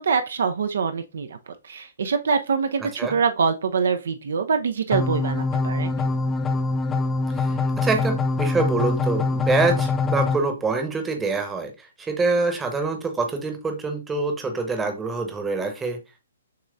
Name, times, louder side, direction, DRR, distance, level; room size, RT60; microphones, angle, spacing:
voice 1, 0.0-5.9, right 5 dB, 60° right, 0.4 m, -24 dB
sound 1, 4.9-10.4, left 3 dB, 15° left, 0.4 m, -24 dB
voice 2, 7.3-16.0, right 3 dB, 10° right, 0.9 m, -25 dB
6.6 x 3.0 x 2.5 m
figure-of-eight pair, 125°, 0 cm